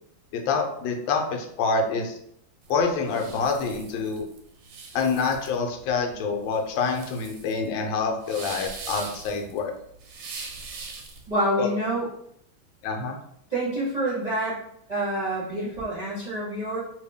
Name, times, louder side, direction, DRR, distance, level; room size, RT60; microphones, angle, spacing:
voice 1, 0.3-2.2 2.7-4.3 4.9-9.7 11.6-11.7 12.8-13.2, left 4 dB, 75° left, 3 dB, 1.3 m, -26 dB
sound 1, 2.6-11.3, right 4 dB, 80° right, 1.3 m, -41 dB
voice 2, 11.3-12.1 13.5-14.6 14.9-16.8, right 1 dB, 30° right, -11 dB, 0.8 m, -27 dB
3.0 x 2.7 x 3.4 m, 0.71 s
omnidirectional pair, 2.2 m